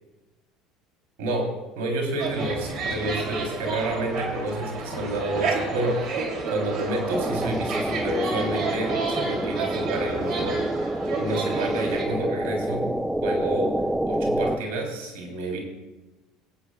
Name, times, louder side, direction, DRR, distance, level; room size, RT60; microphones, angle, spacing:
voice 1, 1.2-10.6 11.2-12.9 13.2-15.6, right 1 dB, 75° right, 1 dB, 3.5 m, -29 dB
sound 1, 2.2-12.0, right 4 dB, 55° right, 3.1 m, -30 dB
sound 2, 7.1-14.6, right 1 dB, 5° right, 0.7 m, -27 dB
22.5 x 8.7 x 2.4 m, 1.1 s
hypercardioid pair, 85°, 0 cm